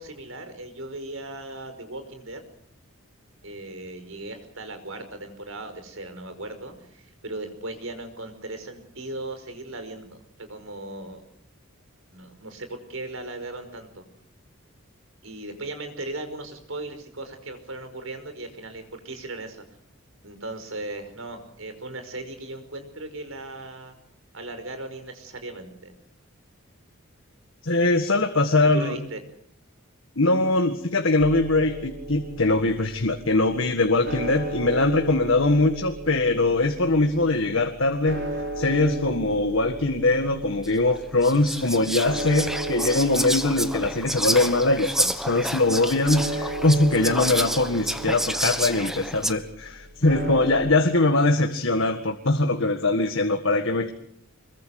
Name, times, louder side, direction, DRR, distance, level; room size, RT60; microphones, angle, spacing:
voice 1, 0.0-2.4 3.4-11.2 12.1-14.0 15.2-19.6 20.2-23.9 24.3-25.9 28.7-29.2, right 2 dB, 70° right, 8 dB, 5.3 m, -37 dB
voice 2, 27.6-29.0 30.2-38.2 38.6-53.9, left 2 dB, 65° left, 5 dB, 1.8 m, -22 dB
sound 1, 31.2-50.6, right 1 dB, 55° right, 6.3 m, -36 dB
Whispering, 40.6-40.7 41.2-49.3, equal, ahead, 1.3 m, -29 dB
25.0 x 22.5 x 6.6 m, 0.64 s
head